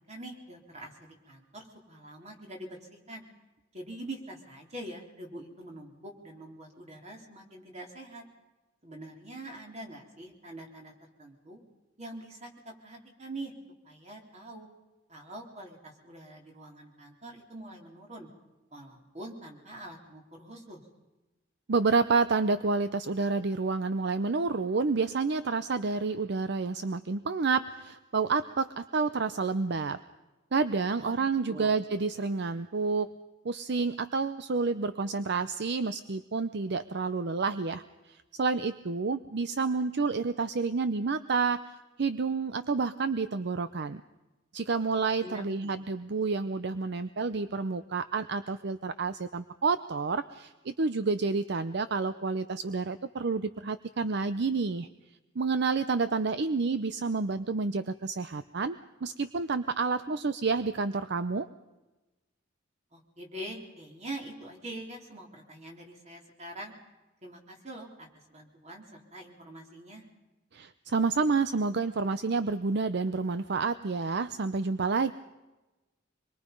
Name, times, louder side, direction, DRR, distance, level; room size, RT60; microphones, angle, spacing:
voice 1, 0.1-3.2 3.7-8.2 8.8-10.9 11.2-11.6 12.0-13.5 13.8-14.7 15.1-18.3 18.7-20.9 31.0-31.2 31.5-31.7 45.2-45.8 62.9-66.7 67.2-70.1, right 1 dB, 35° right, 1 dB, 3.7 m, -44 dB
voice 2, 21.7-30.0 30.5-33.1 33.4-44.0 44.5-54.9 55.4-61.5 70.5-75.1, right 4 dB, 60° right, 12 dB, 0.6 m, -29 dB
25.5 x 22.5 x 5.4 m, 1.1 s
head